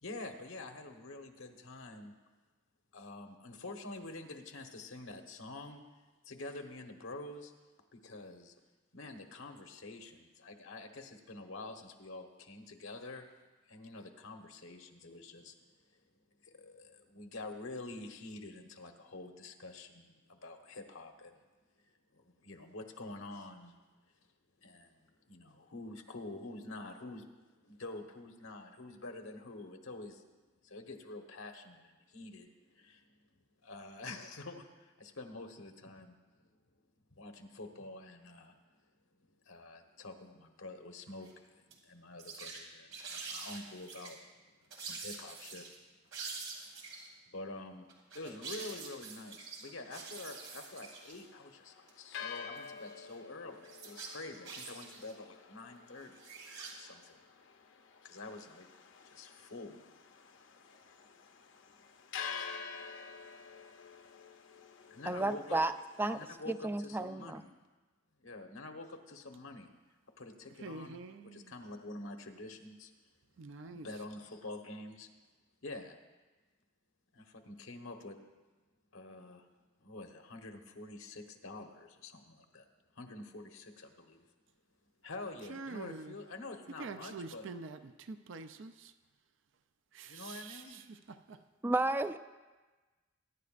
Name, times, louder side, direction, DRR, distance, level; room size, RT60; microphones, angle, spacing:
voice 1, 0.0-2.1 2.9-5.8 6.2-7.5 7.9-8.5 8.9-13.3 13.7-15.7 15.9-16.0 16.4-21.4 22.1-23.8 24.6-27.3 27.6-30.2 30.6-33.1 33.6-36.5 37.1-38.5 39.2-44.2 44.8-45.7 47.3-47.9 48.1-56.2 56.7-57.1 58.0-58.7 59.0-59.8 64.9-65.6 66.1-67.5 68.2-69.7 70.2-72.9 73.6-75.1 75.6-76.0 77.1-78.2 78.9-79.5 79.8-82.7 82.9-84.3 85.0-87.5 90.1-90.8, left 2 dB, 90° left, 4 dB, 1.2 m, -47 dB
sound 1, 41.1-41.3 41.7-41.8 42.1-42.6 42.9-44.1 44.7-45.7 46.1-47.1 47.9-51.2 51.9-52.0 52.6-53.2 53.6-55.1 56.0-56.7, right 4 dB, 85° right, 2.6 m, -46 dB
sound 2, 49.8-66.4, left 6 dB, 65° left, 0.7 m, -49 dB
voice 2, 65.1-65.7 66.0-66.2 66.5-67.4 91.6-92.2, right 2 dB, 10° right, 11 dB, 0.3 m, -32 dB
voice 3, 70.6-71.5 73.4-73.9 85.5-86.2 86.8-88.9 89.9-91.4, right 3 dB, 65° right, 9 dB, 0.5 m, -46 dB
22.0 x 10.5 x 2.5 m, 1.3 s
head